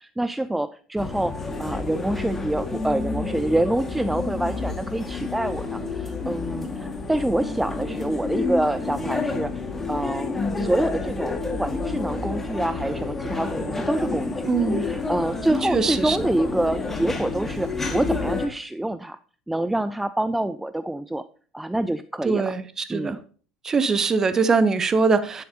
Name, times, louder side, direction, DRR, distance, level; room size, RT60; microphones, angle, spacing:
voice 1, 0.0-14.5 14.8-19.2 19.5-21.3 21.5-22.5 22.9-23.2, right 1 dB, 5° right, 13 dB, 0.4 m, -26 dB
sound 1, 1.0-18.5, left 3 dB, 15° left, 1.9 m, -29 dB
voice 2, 14.5-14.9 15.7-16.2 22.2-23.2 23.6-25.4, right 4 dB, 25° right, 14 dB, 0.9 m, -22 dB
10.5 x 10.0 x 2.9 m, 0.44 s
figure-of-eight pair, 70°, 2 cm